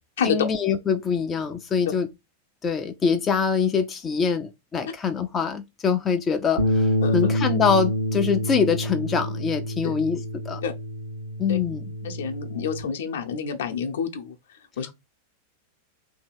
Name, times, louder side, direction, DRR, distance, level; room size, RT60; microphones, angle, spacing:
voice 1, 0.2-2.1 2.6-10.6 11.4-11.8, left 6 dB, 20° left, 0.4 m, -24 dB
Bass guitar, 6.6-12.8, equal, 75° right, 1.0 m, -27 dB
voice 2, 7.0-7.3 9.8-9.9 10.6-10.7 11.5-11.6 12.0-14.4 14.8-14.9, left 6 dB, 60° left, 0.7 m, -28 dB
2.9 x 2.7 x 4.3 m
figure-of-eight pair, 90°, 0 cm